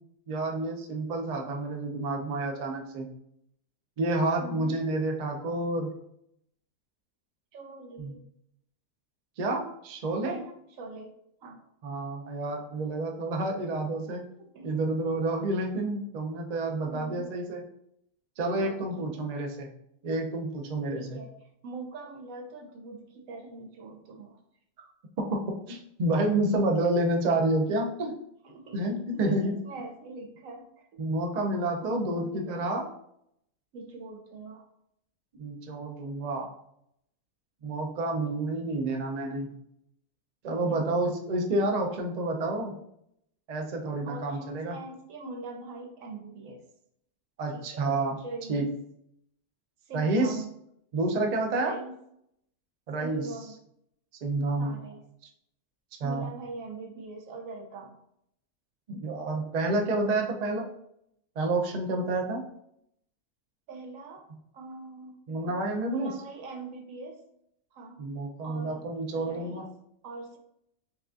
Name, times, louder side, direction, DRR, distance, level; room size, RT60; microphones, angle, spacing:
voice 1, 0.3-3.1 4.0-5.9 8.0-8.1 9.4-10.4 11.8-14.2 14.6-17.6 18.4-19.7 20.0-21.2 25.3-28.1 28.7-29.5 31.0-32.9 35.4-36.5 37.6-39.5 40.4-42.8 43.5-44.8 47.4-48.2 48.5-48.7 49.9-50.4 50.9-51.7 52.9-53.3 54.2-54.8 56.0-56.3 58.9-60.6 61.4-62.4 65.3-66.1 68.0-69.6, right 2 dB, 90° right, 2 dB, 0.3 m, -29 dB
voice 2, 4.4-4.8 7.5-8.2 10.2-11.1 11.4-11.6 14.4-14.9 16.9-17.3 18.6-19.1 20.9-24.4 28.4-31.0 31.8-32.7 33.7-34.7 40.7-40.8 44.0-46.6 47.5-48.7 49.8-50.6 51.6-51.9 53.0-53.6 54.6-55.0 56.0-58.0 63.7-64.2 64.5-65.5 65.9-67.2 67.7-68.1 68.4-68.8 69.1-69.7 70.0-70.4, right 3 dB, 70° right, 3 dB, 1.1 m, -42 dB
5.7 x 2.3 x 2.4 m, 0.74 s
omnidirectional pair, 1.5 m